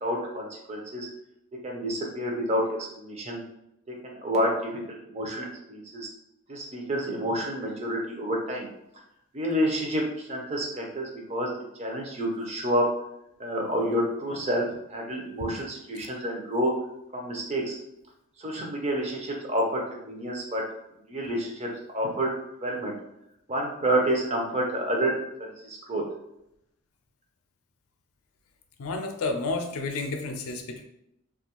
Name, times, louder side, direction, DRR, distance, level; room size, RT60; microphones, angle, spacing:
voice 1, 0.0-1.1 1.6-3.4 3.9-6.1 6.5-8.7 9.3-11.5 11.8-12.8 13.4-14.6 14.9-16.7 17.1-17.8 18.4-20.6 21.1-21.7 21.9-22.3 22.6-22.9 23.5-25.2 25.6-26.0, equal, 30° right, 0 dB, 0.5 m, -29 dB
voice 2, 28.8-30.8, left 3 dB, 85° left, 5 dB, 0.4 m, -31 dB
2.5 x 2.3 x 2.9 m, 0.81 s
head